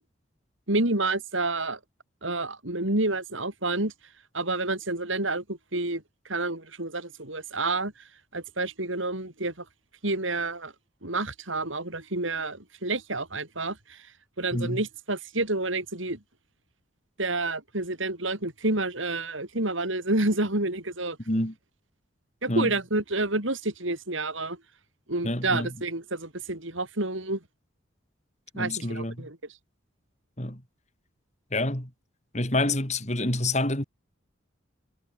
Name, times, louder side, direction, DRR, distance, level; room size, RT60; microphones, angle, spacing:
voice 1, 0.7-1.8 2.2-3.9 4.3-6.0 6.3-7.9 8.3-9.6 10.0-10.7 11.0-14.0 14.4-16.2 17.2-21.2 22.4-24.6 25.1-27.4 28.5-29.4, right 2 dB, 75° right, 5.5 m, -29 dB
voice 2, 25.2-25.7 28.5-29.3 30.4-30.6 31.5-31.9 32.3-33.8, left 2 dB, 35° left, 4.3 m, -27 dB
head